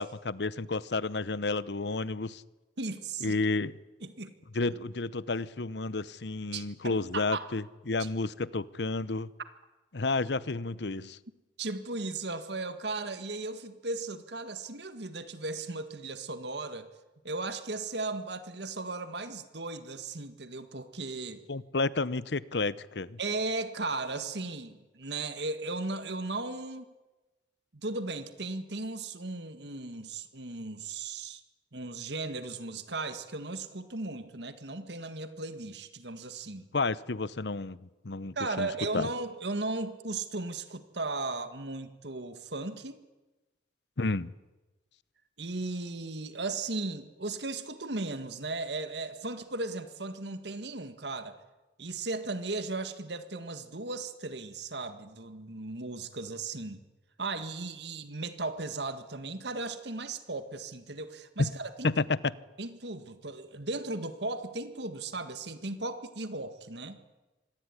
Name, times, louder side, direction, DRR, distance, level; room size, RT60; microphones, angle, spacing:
voice 1, 0.0-2.4 3.2-3.7 4.5-9.3 9.9-11.2 21.5-23.2 36.7-39.1 44.0-44.3 61.4-61.5 61.8-62.3, left 3 dB, 65° left, 18 dB, 0.9 m, -31 dB
voice 2, 2.8-3.4 4.0-4.3 6.5-7.5 8.0-8.1 11.6-16.9 17.2-21.4 23.2-26.9 27.7-31.4 31.7-36.7 38.4-43.0 45.4-51.4 51.8-56.8 57.2-61.9 62.6-67.0, right 3 dB, 65° right, 10 dB, 1.9 m, -36 dB
26.0 x 20.5 x 9.8 m, 1.1 s
head